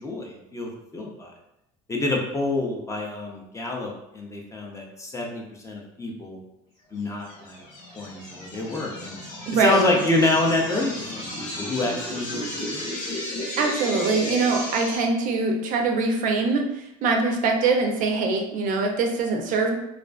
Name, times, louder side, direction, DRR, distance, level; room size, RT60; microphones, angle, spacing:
voice 1, 0.0-1.3 1.9-6.4 6.9-7.6 7.9-9.2 9.5-12.8, left 2 dB, 20° left, -1 dB, 0.5 m, -27 dB
sound 1, 7.2-15.0, left 1 dB, 85° left, 1.5 m, -34 dB
voice 2, 9.5-9.9 13.6-19.7, right 3 dB, 55° right, 2 dB, 0.4 m, -23 dB
2.4 x 2.3 x 2.2 m, 0.84 s
supercardioid pair, 105°, 17 cm